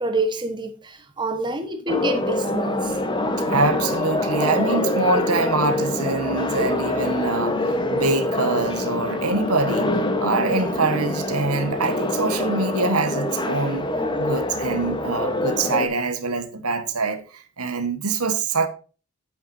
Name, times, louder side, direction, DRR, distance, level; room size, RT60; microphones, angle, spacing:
voice 1, 0.0-3.0, right 2 dB, 20° right, 1.2 m, -27 dB
sound 1, 1.9-15.9, left 2 dB, 20° left, 1.0 m, -25 dB
voice 2, 3.4-9.9 10.2-13.9 14.2-18.7, right 3 dB, 85° right, 1.4 m, -24 dB
9.1 x 8.5 x 2.7 m
head